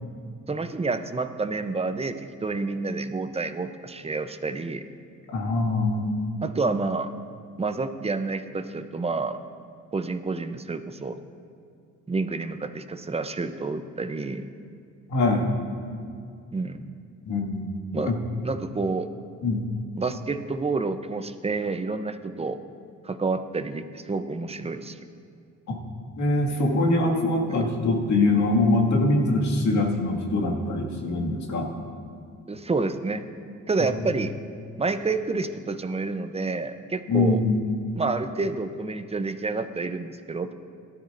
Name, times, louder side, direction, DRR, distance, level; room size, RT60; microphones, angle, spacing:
voice 1, 0.5-4.8 6.4-7.1 7.6-9.4 9.9-11.2 12.1-14.5 16.5-16.8 17.9-18.2 18.4-19.1 20.0-22.6 23.0-25.0 27.5-27.7 32.5-33.2 33.7-34.3 34.8-37.4 37.9-40.5, right 3 dB, 20° right, 9 dB, 0.7 m, -29 dB
voice 2, 5.3-6.1 15.1-15.5 17.3-17.7 18.0-18.2 19.4-19.7 25.7-25.8 26.2-31.7 37.1-37.7, left 2 dB, 70° left, 0 dB, 2.1 m, -23 dB
18.0 x 13.0 x 2.6 m, 2.3 s
cardioid pair, 90°, 30 cm